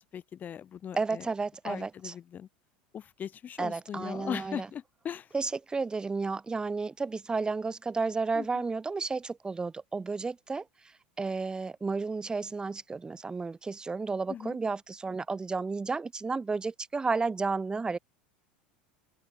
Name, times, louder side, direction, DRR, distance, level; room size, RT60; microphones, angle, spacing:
voice 1, 0.0-1.3 1.6-2.5 2.9-5.3 8.3-8.6 14.3-14.6, left 9 dB, 35° left, 3.3 m, -39 dB
voice 2, 1.0-2.1 3.6-4.7 5.3-10.6 11.2-18.0, right 4 dB, 15° right, 1.3 m, -32 dB
open air
hypercardioid pair, 90°, 5 cm